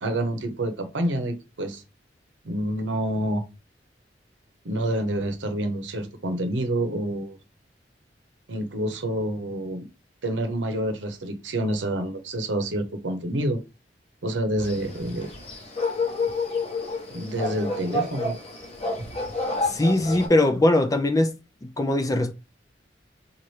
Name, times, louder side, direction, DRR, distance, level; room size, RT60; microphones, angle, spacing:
voice 1, 0.0-1.8 2.4-3.4 4.6-7.4 8.5-9.8 10.2-13.6 14.2-15.3 17.1-18.4, right 1 dB, 90° right, 0.8 m, -28 dB
sound 1, 14.6-20.3, left 2 dB, 35° left, 1.0 m, -29 dB
voice 2, 19.6-21.3 21.6-22.3, left 1 dB, 20° left, 0.4 m, -21 dB
4.1 x 2.5 x 3.2 m
head